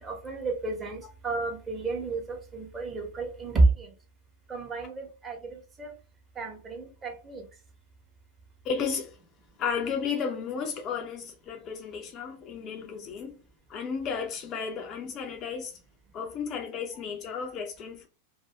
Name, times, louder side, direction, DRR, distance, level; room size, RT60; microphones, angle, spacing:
voice 1, 0.0-3.9 4.5-5.9 6.4-7.4, right 3 dB, 20° right, 1.1 m, -30 dB
voice 2, 8.6-9.1 9.6-13.4 13.7-15.7 16.1-18.1, left 6 dB, 35° left, 0.6 m, -33 dB
2.7 x 2.6 x 3.3 m
figure-of-eight pair, 90°, 0 cm